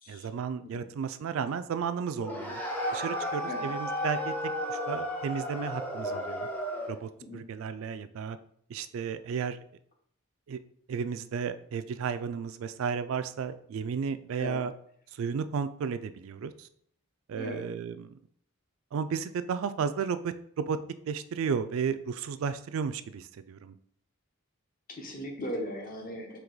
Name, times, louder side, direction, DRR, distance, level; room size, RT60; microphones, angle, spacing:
voice 1, 0.1-2.6 2.9-4.3 4.7-6.5 6.9-8.4 8.7-9.6 10.5-10.6 10.9-14.7 15.2-16.7 17.3-18.1 18.9-20.8 21.1-23.8, right 6 dB, 70° right, 11 dB, 0.3 m, -33 dB
sound 1, 2.2-7.0, equal, 10° left, 0.6 m, -33 dB
voice 2, 24.9-26.4, equal, 40° left, 2 dB, 0.9 m, -38 dB
4.6 x 2.9 x 3.9 m, 0.65 s
head